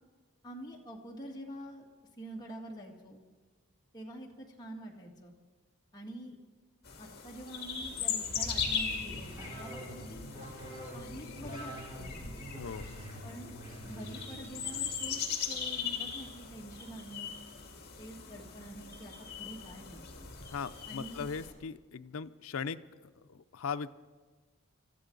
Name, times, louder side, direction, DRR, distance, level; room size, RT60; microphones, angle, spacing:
voice 1, 0.4-1.9 2.2-3.2 3.9-5.3 5.9-6.4 7.0-10.2 10.9-12.3 13.2-13.5 13.8-15.2 15.5-17.3 18.0-20.1 20.9-21.3, right 1 dB, 20° left, -2 dB, 1.9 m, -46 dB
sound 1, 6.8-21.5, left 6 dB, 50° left, 2.1 m, -39 dB
sound 2, 8.6-15.0, equal, 20° right, 7.1 m, -46 dB
voice 2, 12.6-12.9 20.5-23.9, left 5 dB, 80° left, 12 dB, 0.5 m, -39 dB
25.5 x 14.0 x 3.9 m, 1.4 s
head